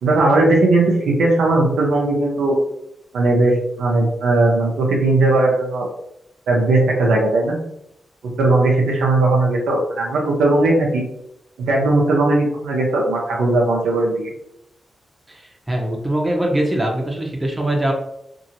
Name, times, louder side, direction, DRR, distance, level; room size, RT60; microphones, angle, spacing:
voice 1, 0.0-2.6 3.1-5.9 6.5-7.6 8.4-11.0 11.7-14.3, right 2 dB, 85° right, -2 dB, 0.7 m, -17 dB
voice 2, 15.3-17.9, right 1 dB, 25° right, 0 dB, 0.8 m, -22 dB
2.7 x 2.7 x 2.8 m, 0.77 s
supercardioid pair, 45°, 0 cm